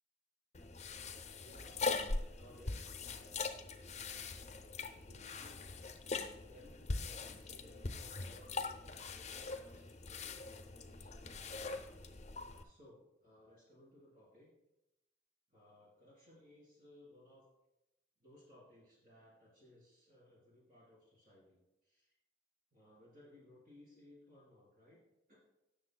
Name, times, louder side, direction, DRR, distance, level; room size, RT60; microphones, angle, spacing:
sound 1, 0.5-12.6, left 3 dB, 35° left, 0.7 m, -42 dB
voice 1, 1.3-3.9 4.4-5.7 6.2-11.9 12.6-14.6 15.5-17.5 18.2-22.2 22.7-25.0 25.3-25.4, left 1 dB, 45° right, -6 dB, 3.5 m, -62 dB
17.5 x 6.8 x 2.2 m, 0.90 s
head